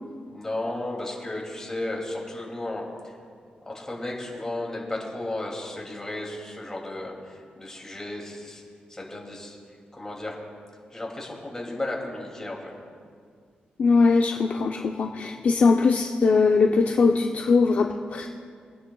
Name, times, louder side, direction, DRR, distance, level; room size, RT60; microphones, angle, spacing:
voice 1, 0.3-3.1 3.6-8.6 8.9-9.6 9.9-10.4 10.9-12.7, left 2 dB, 15° left, -2 dB, 2.5 m, -34 dB
voice 2, 13.8-18.3, left 4 dB, 55° left, 3 dB, 0.5 m, -21 dB
25.5 x 9.8 x 2.3 m, 2.1 s
wide cardioid pair, 110°, 3 cm